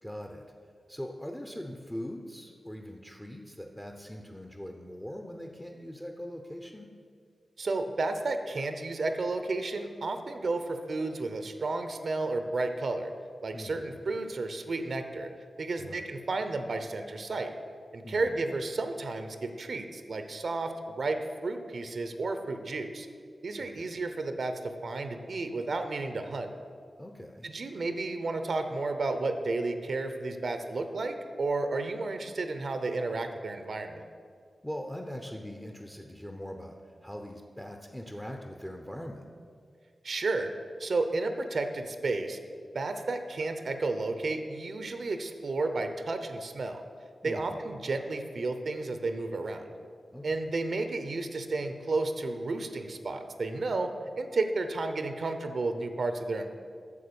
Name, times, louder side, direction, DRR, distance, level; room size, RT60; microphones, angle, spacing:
voice 1, 0.0-0.5 0.9-6.9 13.5-14.0 15.8-16.1 18.0-18.5 23.6-24.0 27.0-27.5 34.6-39.3 47.2-47.9 50.1-50.5, equal, 10° left, 3 dB, 0.8 m, -42 dB
voice 2, 7.6-13.1 13.4-15.3 15.6-17.5 17.9-23.1 23.4-26.5 27.4-34.0 40.0-40.5 40.8-42.4 42.7-46.8 47.2-49.7 50.2-53.9 54.2-56.5, right 3 dB, 70° right, 7 dB, 0.8 m, -32 dB
8.5 x 7.1 x 6.9 m, 2.2 s
cardioid pair, 65°, 0 cm